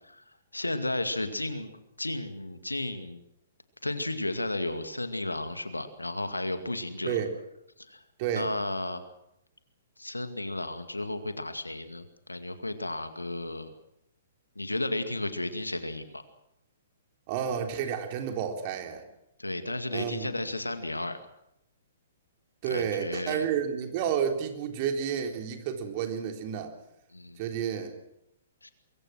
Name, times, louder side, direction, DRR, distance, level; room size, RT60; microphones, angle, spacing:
voice 1, 0.5-3.2 3.8-7.2 7.9-8.0 8.4-9.0 10.0-13.7 14.6-16.2 19.4-21.2 22.7-23.5 27.1-27.4 28.6-28.7, left 2 dB, 85° left, 9 dB, 2.2 m, -33 dB
voice 2, 8.2-8.5 17.3-19.0 19.9-20.3 22.6-26.7 27.4-27.9, right 8 dB, 40° right, 4 dB, 3.7 m, -30 dB
23.5 x 23.5 x 6.3 m, 0.81 s
figure-of-eight pair, 120°, 0 cm